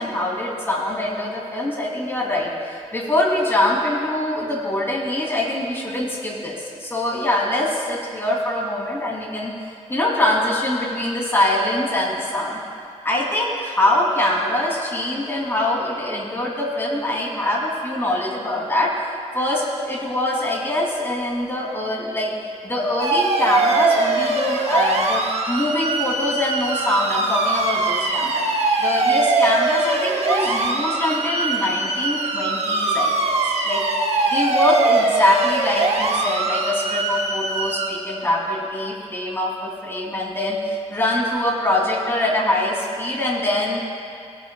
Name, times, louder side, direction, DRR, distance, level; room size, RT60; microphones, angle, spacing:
voice 1, 0.0-9.5 9.9-12.6 13.0-18.9 19.3-22.3 22.6-28.4 28.8-33.4 33.6-33.8 34.3-43.8, left 1 dB, 20° left, -4 dB, 2.9 m, -23 dB
sound 1, 23.0-37.9, right 3 dB, 65° right, 1.2 m, -22 dB
21.5 x 8.4 x 2.3 m, 2.4 s
cardioid pair, 85°, 12 cm